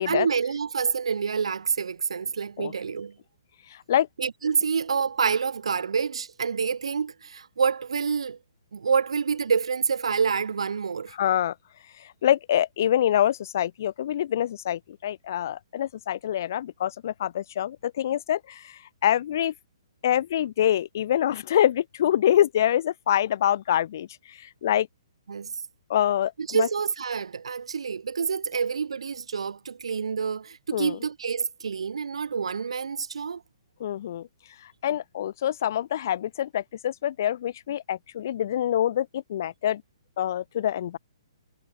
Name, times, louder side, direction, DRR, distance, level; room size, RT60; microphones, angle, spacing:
voice 1, 0.1-3.2 4.2-8.4 8.7-11.2 25.3-25.6 26.4-33.4, right 6 dB, 85° right, 5.4 m, -27 dB
voice 2, 11.2-11.5 12.2-19.5 20.0-24.1 24.6-24.9 25.9-26.7 30.7-31.0 33.8-34.3 34.8-39.8 40.2-41.0, left 11 dB, 35° left, 0.9 m, -25 dB
hypercardioid pair, 180°, 3 cm